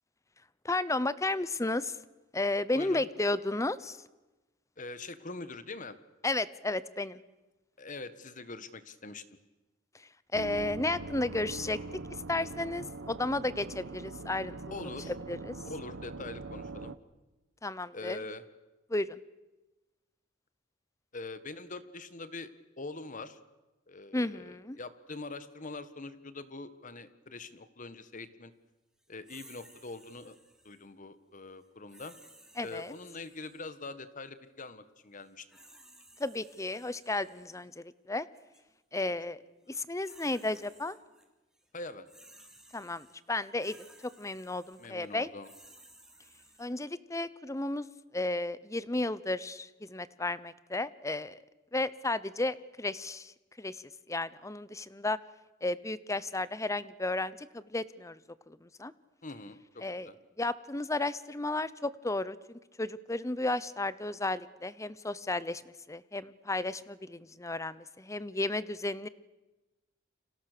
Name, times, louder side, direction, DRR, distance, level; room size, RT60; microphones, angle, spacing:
voice 1, 0.6-1.9 2.3-4.0 6.2-7.2 10.3-11.8 12.3-14.6 15.1-15.6 17.6-18.2 18.9-19.2 24.1-24.8 32.6-32.9 36.2-38.3 38.9-39.4 39.7-41.0 42.7-43.8 44.0-45.3 46.6-47.9 48.1-51.4 51.7-53.3 53.6-53.8 54.1-55.2 55.6-58.2 58.5-58.9 59.8-60.1 60.4-69.1, left 2 dB, 15° left, 17 dB, 0.8 m, -33 dB
voice 2, 2.7-3.1 4.8-6.0 7.8-9.2 14.7-15.1 15.6-16.9 17.9-18.4 21.1-22.5 22.8-23.4 23.9-28.5 29.1-30.3 30.6-32.1 32.6-35.4 41.7-42.1 44.8-45.5 59.2-60.1, left 3 dB, 40° left, 13 dB, 1.5 m, -43 dB
sound 1, 10.3-17.0, right 3 dB, 80° right, 1.0 m, -42 dB
sound 2, 29.2-30.9 31.9-33.7 35.2-37.6 38.3-38.6 39.7-41.2 41.5-46.7, right 1 dB, 5° right, 3.3 m, -58 dB
30.0 x 25.5 x 6.8 m, 1.1 s
head